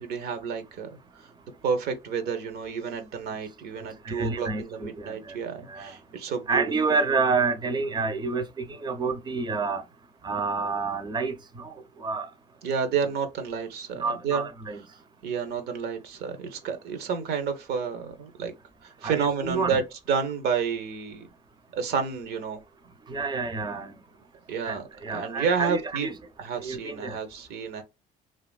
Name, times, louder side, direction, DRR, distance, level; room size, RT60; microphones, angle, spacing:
voice 1, 0.0-0.9 1.6-6.6 12.6-14.5 15.2-18.5 18.8-19.8 20.1-21.3 21.8-22.6 24.5-26.1 26.4-27.8, right 6 dB, 70° right, 0.6 m, -30 dB
voice 2, 4.1-5.3 5.7-6.0 6.5-9.8 10.2-11.7 12.0-12.3 14.0-14.8 19.0-19.8 23.1-23.9 24.6-26.1 26.6-27.2, right 4 dB, 25° right, 0.5 m, -29 dB
2.8 x 2.3 x 2.2 m
cardioid pair, 110°, 17 cm